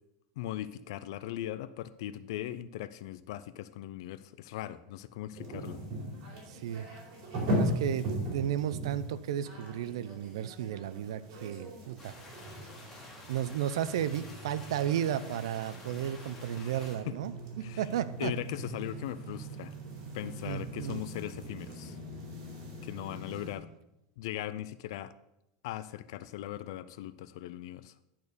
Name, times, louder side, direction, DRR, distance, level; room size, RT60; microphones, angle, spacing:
voice 1, 0.4-5.8 16.6-17.2 17.6-17.8 18.2-19.7 20.1-22.0 22.8-23.7 24.2-25.1 25.6-27.9, left 13 dB, 70° left, 14 dB, 0.4 m, -39 dB
sound 1, 5.3-23.5, equal, 45° right, 4.2 m, -39 dB
voice 2, 6.5-6.9 7.5-12.1 13.3-18.3 20.4-21.0, right 10 dB, 85° right, 15 dB, 0.6 m, -34 dB
sound 2, 12.0-17.0, left 2 dB, 15° left, 2.3 m, -50 dB
11.0 x 4.4 x 6.7 m, 0.86 s
supercardioid pair, 150°, 3 cm